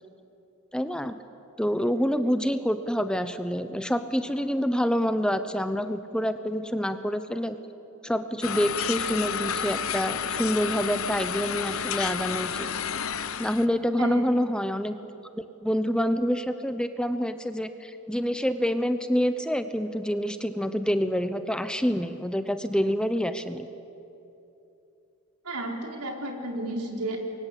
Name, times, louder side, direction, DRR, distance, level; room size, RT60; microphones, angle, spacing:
voice 1, 0.7-1.2 1.6-7.6 8.0-12.7 13.4-15.0 15.6-23.7, equal, 5° left, 10 dB, 0.8 m, -27 dB
sound 1, 8.4-13.7, left 7 dB, 65° left, 0.9 m, -30 dB
voice 2, 25.4-27.2, right 1 dB, 90° right, 1 dB, 4.8 m, -32 dB
29.5 x 24.0 x 8.3 m, 2.8 s
head